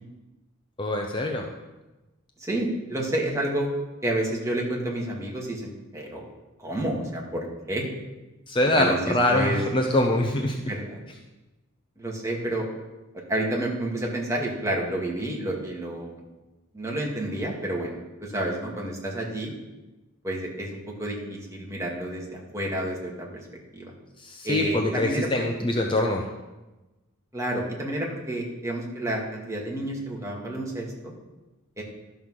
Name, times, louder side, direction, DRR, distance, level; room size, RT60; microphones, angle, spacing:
voice 1, 0.8-1.4 8.5-10.7 24.2-26.2, left 1 dB, 25° left, 2 dB, 0.8 m, -24 dB
voice 2, 2.4-3.7 4.0-6.3 6.6-7.9 8.8-9.6 10.7-11.0 12.0-12.7 13.3-16.2 16.7-19.5 20.2-23.3 23.7-23.9 24.4-25.7 27.3-31.1 31.8-31.9, right 1 dB, 15° right, -2 dB, 2.0 m, -30 dB
12.0 x 5.7 x 6.3 m, 1.1 s
head